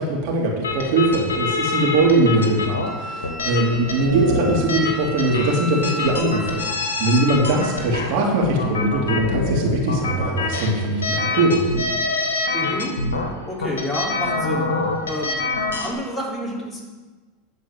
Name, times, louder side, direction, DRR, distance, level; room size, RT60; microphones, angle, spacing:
voice 1, 0.0-11.6, right 2 dB, 60° right, -2 dB, 2.7 m, -21 dB
sound 1, 0.6-15.9, left 3 dB, 90° left, 1.3 m, -26 dB
Wind instrument woodwind instrument, 2.8-8.0, right 1 dB, 5° right, 1.4 m, -35 dB
voice 2, 12.5-12.9 13.5-14.7 15.1-15.3 15.8-16.8, left 1 dB, 15° left, -4 dB, 3.5 m, -28 dB
11.5 x 4.5 x 7.6 m, 1.3 s
hypercardioid pair, 95°, 0 cm